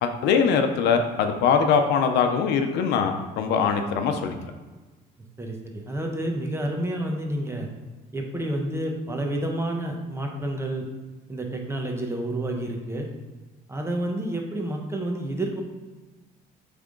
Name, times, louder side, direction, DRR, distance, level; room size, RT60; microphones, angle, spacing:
voice 1, 0.0-4.4, left 6 dB, 80° left, 6 dB, 0.7 m, -22 dB
voice 2, 5.4-7.7 8.1-10.9 11.3-13.1 13.7-15.6, right 1 dB, 15° right, 2 dB, 1.0 m, -29 dB
8.1 x 3.5 x 3.8 m, 1.2 s
cardioid pair, 110°, 17 cm